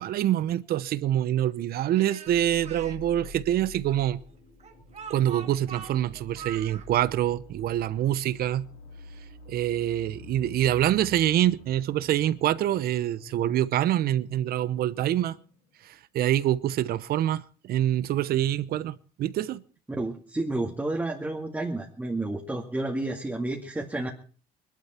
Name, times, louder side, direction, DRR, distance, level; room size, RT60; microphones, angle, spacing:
voice 1, 0.0-4.2 5.1-8.7 9.5-15.4 15.8-19.6, right 12 dB, 65° right, 0.9 m, -26 dB
Speech, 1.9-3.0 3.9-6.9, right 7 dB, 40° right, 2.0 m, -43 dB
sound 1, 2.3-16.0, left 3 dB, 80° left, 7.5 m, -48 dB
voice 2, 20.0-24.1, right 2 dB, 10° right, 2.2 m, -30 dB
22.0 x 12.0 x 4.4 m
cardioid pair, 110°, 17 cm